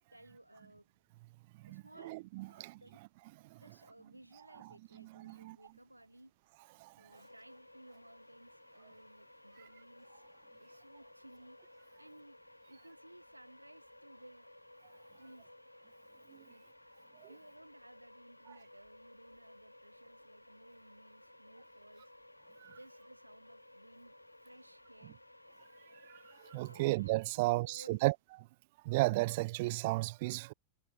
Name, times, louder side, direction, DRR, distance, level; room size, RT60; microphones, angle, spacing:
voice 1, 0.1-0.9 1.6-2.2 2.4-3.0 3.5-6.3 7.0-10.3 10.6-11.7 12.0-12.4 12.7-14.5 15.2-15.5 16.5-16.6 17.3-22.1 22.7-25.2 26.7-26.9 27.3-28.0, right 1 dB, 85° right, 5.7 m, -58 dB
voice 2, 1.6-2.8 3.5-3.6 5.0-5.6 6.8-6.9 16.3-16.4 22.6-22.8 26.3-28.1 28.8-30.5, right 21 dB, 50° right, 0.4 m, -34 dB
sound 1, 7.1-27.1, left 1 dB, 85° left, 2.9 m, -58 dB
figure-of-eight pair, 90°, 0 cm